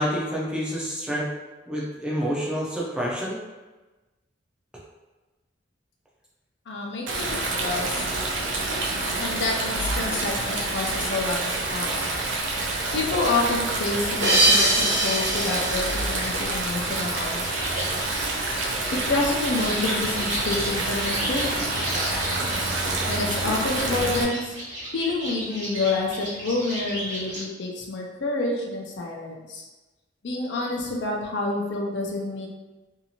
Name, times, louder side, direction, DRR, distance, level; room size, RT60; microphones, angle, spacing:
voice 1, 0.0-1.3 1.7-3.4, equal, 5° right, -6 dB, 0.5 m, -28 dB
voice 2, 6.7-8.1 9.2-11.4 11.7-12.0 12.9-17.7 18.9-21.5 23.1-24.6 24.9-29.7 30.2-32.5, left 3 dB, 65° left, -1 dB, 0.5 m, -28 dB
Stream, 7.1-24.2, right 2 dB, 75° right, 0.5 m, -27 dB
sound 1, 14.2-17.3, right 1 dB, 90° right, 1.0 m, -24 dB
sound 2, 17.4-27.4, equal, 40° right, 1.0 m, -34 dB
2.7 x 2.5 x 2.8 m, 1.2 s
head